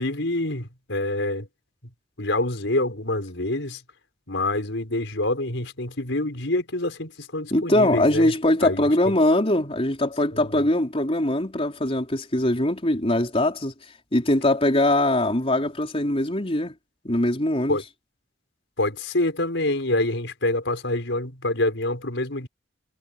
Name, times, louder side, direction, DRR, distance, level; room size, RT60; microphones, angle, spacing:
voice 1, 0.0-1.5 2.2-3.8 4.3-8.3 8.6-9.1 10.3-10.7 17.7-17.8 18.8-22.5, left 2 dB, 75° left, 5.2 m, -26 dB
voice 2, 7.5-13.7 14.1-16.7 17.0-17.8, left 1 dB, 30° left, 4.0 m, -22 dB
head